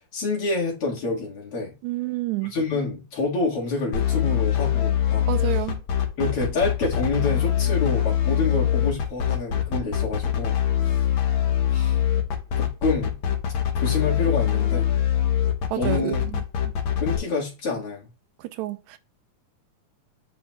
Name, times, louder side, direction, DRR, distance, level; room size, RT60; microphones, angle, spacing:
voice 1, 0.1-1.7 2.5-5.6 6.2-11.1 11.7-12.0 12.6-13.2 13.7-14.9 15.7-16.2 17.0-18.1, left 3 dB, 50° left, 2.5 m, -28 dB
voice 2, 1.8-2.5 5.3-5.8 15.7-16.4 18.6-19.0, right 16 dB, 80° right, 1.8 m, -29 dB
sound 1, 3.9-17.2, left 10 dB, 80° left, 1.1 m, -23 dB
8.6 x 5.4 x 2.3 m
omnidirectional pair, 3.5 m